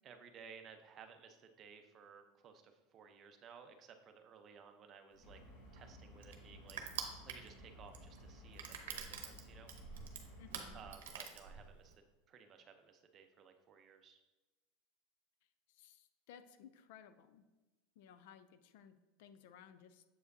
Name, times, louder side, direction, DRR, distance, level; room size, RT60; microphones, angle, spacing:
voice 1, 0.0-5.4 5.7-9.7 10.7-12.0 12.3-14.2, right 6 dB, 35° right, 6 dB, 0.7 m, -58 dB
sound 1, 5.2-10.9, equal, 50° left, 1.8 m, -56 dB
Crushing, 5.2-12.0, right 7 dB, 85° right, 0.8 m, -47 dB
voice 2, 10.4-10.8 15.7-17.5 18.0-20.0, left 8 dB, 70° left, 11 dB, 0.4 m, -59 dB
7.5 x 4.8 x 2.7 m, 1.1 s
supercardioid pair, 115°, 0 cm